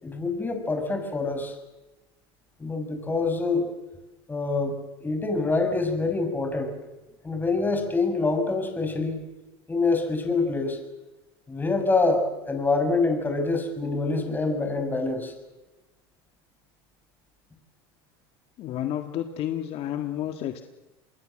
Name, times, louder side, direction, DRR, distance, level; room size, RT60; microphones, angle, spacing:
voice 1, 0.0-1.6 2.6-3.7 4.3-4.7 5.0-6.8 7.2-9.2 9.7-10.8 11.5-15.3, left 3 dB, 15° left, 5 dB, 6.3 m, -26 dB
voice 2, 18.6-20.6, left 11 dB, 45° left, 6 dB, 1.8 m, -30 dB
27.5 x 22.0 x 7.7 m, 1.0 s
supercardioid pair, 120°, 13 cm